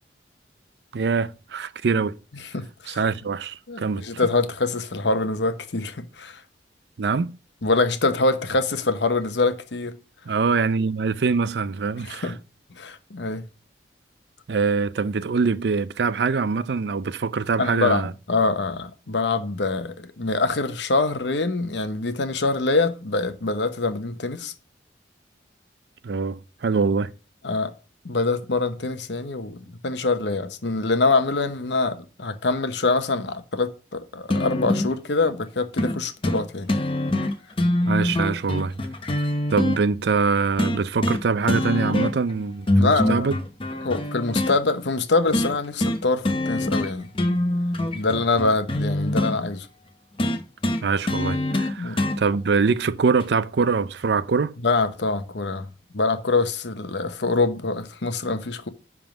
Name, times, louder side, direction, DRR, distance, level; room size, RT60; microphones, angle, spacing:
voice 1, 0.9-2.2 2.9-4.2 7.0-7.4 10.3-12.3 14.5-18.1 26.0-27.1 37.9-38.8 39.5-43.3 50.8-54.6, right 4 dB, 70° right, 0.5 m, -24 dB
voice 2, 2.5-3.0 3.7-6.4 7.6-10.0 12.0-12.4 12.8-13.4 17.6-24.5 27.4-27.7 28.0-36.7 42.8-43.3 43.8-47.1 47.9-49.7 51.8-52.0 54.6-55.7 55.9-58.7, left 3 dB, 80° left, 0.9 m, -24 dB
sound 1, 34.3-34.9 35.8-36.0 36.2-36.4 36.7-39.8 40.6-41.2 41.5-42.3 42.7-44.5 45.3-45.5 45.8-46.0 46.2-46.9 47.1-49.4 50.2-52.2 53.2-53.3, left 1 dB, 30° left, 0.8 m, -24 dB
10.5 x 3.7 x 6.0 m
head